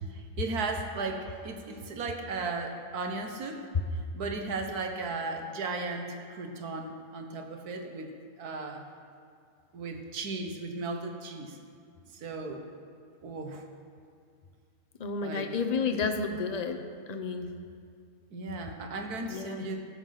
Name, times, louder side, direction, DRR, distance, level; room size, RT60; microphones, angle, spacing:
voice 1, 0.1-3.7 4.1-8.1 8.4-8.8 9.7-11.6 12.1-12.6 13.2-13.7 15.2-15.5 18.3-19.8, right 3 dB, 75° right, 4 dB, 1.7 m, -36 dB
voice 2, 15.0-16.8 17.1-17.6 19.3-19.6, left 4 dB, 35° left, 6 dB, 0.8 m, -31 dB
15.0 x 9.0 x 5.9 m, 2.3 s
omnidirectional pair, 1.7 m